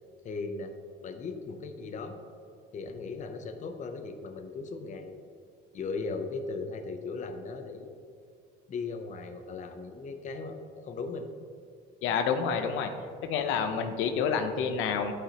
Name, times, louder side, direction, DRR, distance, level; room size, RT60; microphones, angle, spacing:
voice 1, 0.2-0.7 1.0-2.2 2.7-5.2 5.7-7.9 8.7-11.3, left 4 dB, 35° left, 6 dB, 0.6 m, -37 dB
voice 2, 12.0-12.9 13.2-15.1, left 6 dB, 80° left, 7 dB, 0.7 m, -28 dB
11.0 x 5.0 x 2.9 m, 2.3 s
cardioid pair, 115°, 20 cm